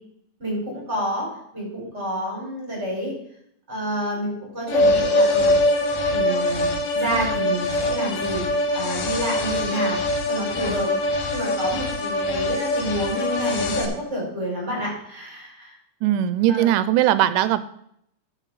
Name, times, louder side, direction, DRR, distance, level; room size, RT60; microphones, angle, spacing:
voice 1, 0.4-1.3 1.5-3.1 3.7-5.6 6.1-8.4 8.7-10.0 10.3-10.9 11.3-15.7 16.5-16.7, equal, 20° right, -4 dB, 5.5 m, -28 dB
sound 1, 4.7-13.9, left 1 dB, 85° left, 2.9 m, -23 dB
voice 2, 16.0-17.6, right 12 dB, 90° right, 13 dB, 2.2 m, -19 dB
12.0 x 7.7 x 4.1 m, 0.71 s
omnidirectional pair, 3.7 m